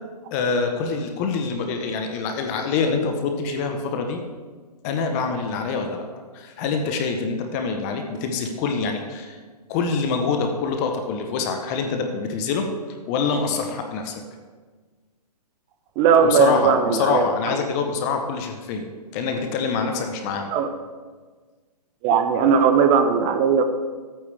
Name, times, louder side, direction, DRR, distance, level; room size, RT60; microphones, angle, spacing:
voice 1, 0.3-4.2 4.8-6.0 6.3-9.4 9.7-12.7 13.1-14.2 16.2-18.9 19.1-20.5, left 5 dB, 25° left, 4 dB, 0.8 m, -25 dB
voice 2, 16.0-17.3 20.5-20.7 22.0-23.6, right 6 dB, 15° right, 8 dB, 0.4 m, -18 dB
12.5 x 8.7 x 3.3 m, 1.4 s
hypercardioid pair, 145°, 21 cm